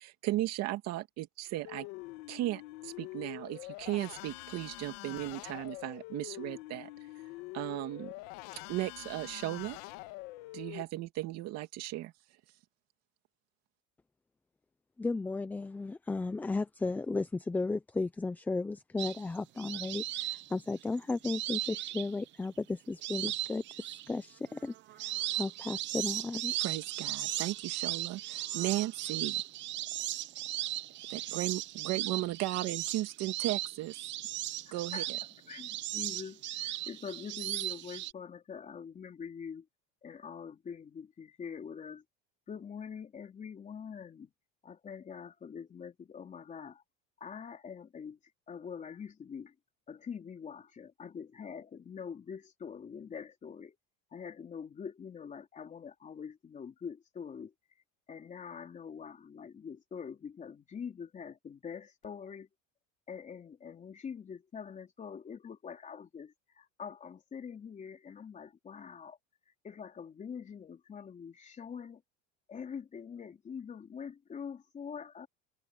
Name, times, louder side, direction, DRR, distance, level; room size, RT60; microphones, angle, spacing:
voice 1, 0.0-1.9 2.3-6.9 7.5-8.1 8.7-9.8 10.5-12.1 26.6-29.4 31.1-34.1 34.7-35.2, right 16 dB, 55° right, 2.5 m, -36 dB
sound 1, 1.7-10.8, left 20 dB, 70° left, 2.0 m, -45 dB
voice 2, 15.0-25.0 25.3-26.6, left 3 dB, 5° left, 0.4 m, -35 dB
sound 2, 19.0-22.4 23.0-24.1 24.5-38.1, right 14 dB, 35° right, 0.7 m, -37 dB
voice 3, 34.7-35.1 35.5-39.7 40.0-42.0 42.5-44.3 44.6-46.8 47.2-48.2 48.5-49.5 49.9-53.8 54.1-57.5 58.1-62.5 63.1-69.2 69.6-72.0 72.5-75.3, left 6 dB, 25° left, 3.9 m, -44 dB
open air
cardioid pair, 155°, 32 cm